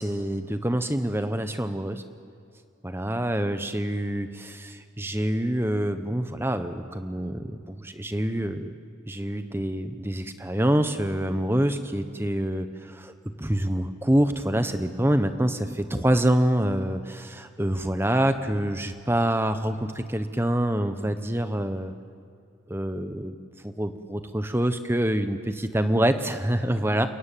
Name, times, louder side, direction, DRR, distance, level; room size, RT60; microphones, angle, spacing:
voice 1, 0.0-2.0 2.8-8.7 9.1-13.1 13.4-21.9 22.7-23.3 23.6-27.1, right 1 dB, 10° right, 9 dB, 1.0 m, -26 dB
29.0 x 14.0 x 9.3 m, 2.4 s
head